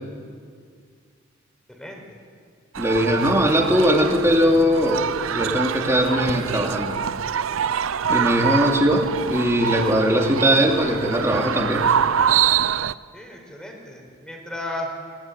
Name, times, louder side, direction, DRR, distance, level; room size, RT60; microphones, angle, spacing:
voice 1, 1.7-2.2 3.2-3.4 13.1-14.9, left 1 dB, 5° left, 2 dB, 4.6 m, -35 dB
sound 1, 2.7-12.9, right 8 dB, 85° right, 0.5 m, -25 dB
voice 2, 2.8-5.0 5.3-6.9 8.1-11.9, equal, 15° right, 1 dB, 2.8 m, -20 dB
22.0 x 21.0 x 9.3 m, 2.1 s
head